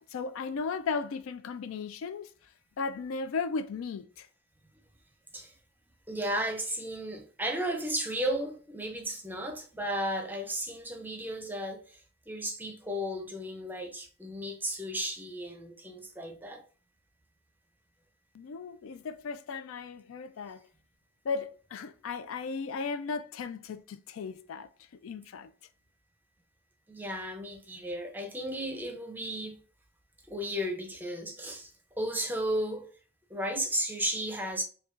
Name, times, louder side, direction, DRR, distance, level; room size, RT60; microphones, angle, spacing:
voice 1, 0.0-2.3 2.8-4.3 18.3-20.6 21.2-24.7 25.0-25.5, left 5 dB, 85° left, 0.4 m, -36 dB
voice 2, 6.1-12.0 12.3-16.6 26.9-29.6 30.3-32.9 33.3-34.6, right 1 dB, 10° right, 0.6 m, -34 dB
5.2 x 2.3 x 2.5 m
head